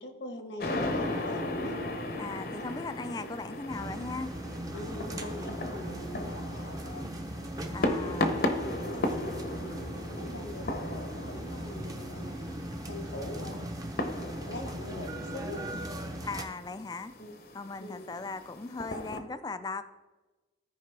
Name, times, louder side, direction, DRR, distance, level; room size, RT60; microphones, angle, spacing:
voice 1, 0.0-1.9 4.7-7.1 7.6-8.2 8.9-9.7 10.1-13.6 14.4-16.0 17.2-17.4 17.8-18.1, left 1 dB, 85° left, 6 dB, 1.2 m, -43 dB
sound 1, 0.6-19.2, left 1 dB, 55° left, 0.8 m, -36 dB
voice 2, 2.1-4.3 7.6-8.4 16.2-17.1 17.5-19.8, left 3 dB, 20° left, 12 dB, 0.3 m, -38 dB
sound 2, 3.7-16.4, right 1 dB, 20° right, 0.7 m, -39 dB
sound 3, 8.5-14.1, equal, 40° right, 1.3 m, -54 dB
14.0 x 4.8 x 3.3 m, 1.2 s
head